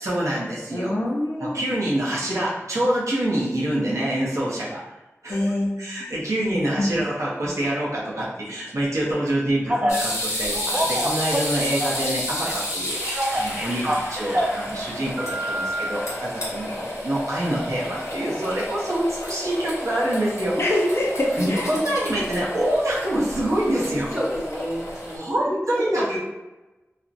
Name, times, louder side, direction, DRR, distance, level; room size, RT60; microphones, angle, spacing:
voice 1, 0.0-0.9 1.4-4.8 5.2-5.5 5.8-13.0 13.3-20.5 21.4-24.1 25.1-26.2, right 1 dB, 85° right, -6 dB, 0.7 m, -26 dB
voice 2, 0.7-1.7 5.3-5.8 6.8-6.9 20.6-21.7, left 1 dB, 55° left, -2 dB, 0.5 m, -24 dB
Telephone, 9.7-10.0 10.5-12.2 12.4-14.6 15.2-15.9, equal, 25° right, 0.4 m, -26 dB
sound 1, 9.9-25.2, left 1 dB, 85° left, 0.8 m, -31 dB
voice 3, 23.7-26.2, equal, 5° left, -7 dB, 1.0 m, -29 dB
2.4 x 2.0 x 2.6 m, 1.1 s
wide cardioid pair, 45°, 5 cm